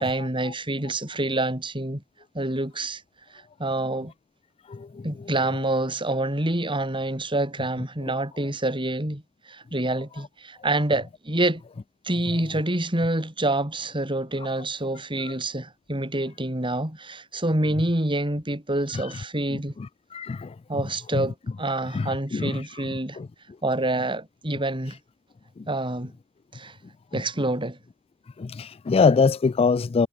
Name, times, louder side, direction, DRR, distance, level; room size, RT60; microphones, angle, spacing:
voice 1, 0.0-2.0 2.3-3.0 3.6-4.1 5.0-9.2 9.5-11.6 12.0-19.7 20.7-23.2 23.6-25.0 25.7-26.1 26.5-26.7 27.1-27.8, right 1 dB, 25° right, 4.6 m, -27 dB
voice 2, 4.7-5.0 18.9-19.1 20.1-20.5 21.1-21.3 21.9-22.6 23.2-23.3 28.4-30.1, left 4 dB, 25° left, 0.3 m, -23 dB
head